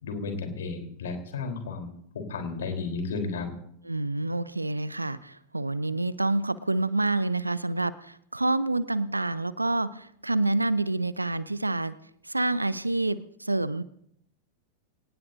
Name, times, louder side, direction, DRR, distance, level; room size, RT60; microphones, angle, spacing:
voice 1, 0.0-1.9 2.1-3.5, left 4 dB, 60° left, 5 dB, 3.8 m, -33 dB
voice 2, 3.8-11.9 12.2-13.8, right 2 dB, 85° right, 18 dB, 0.7 m, -28 dB
26.0 x 18.5 x 2.7 m, 0.69 s
figure-of-eight pair, 90°, 0 cm